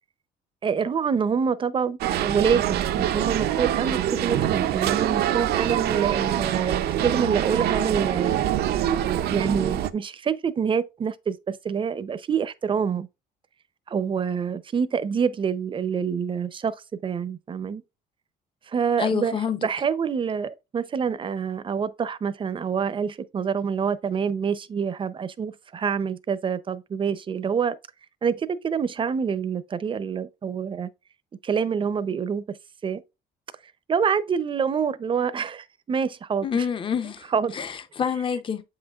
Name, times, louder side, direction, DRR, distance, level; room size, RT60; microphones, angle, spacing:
voice 1, 0.6-8.5 9.3-13.1 13.9-16.8 17.0-17.8 18.7-27.8 28.2-30.9 31.4-32.6 32.8-33.0 33.9-36.6 37.3-37.6, right 6 dB, 30° right, 0.6 m, -26 dB
sound 1, 2.0-9.9, right 11 dB, 70° right, 0.6 m, -25 dB
voice 2, 19.0-19.7 36.4-38.6, left 7 dB, 30° left, 0.7 m, -27 dB
7.5 x 5.7 x 2.4 m
cardioid pair, 110°, 17 cm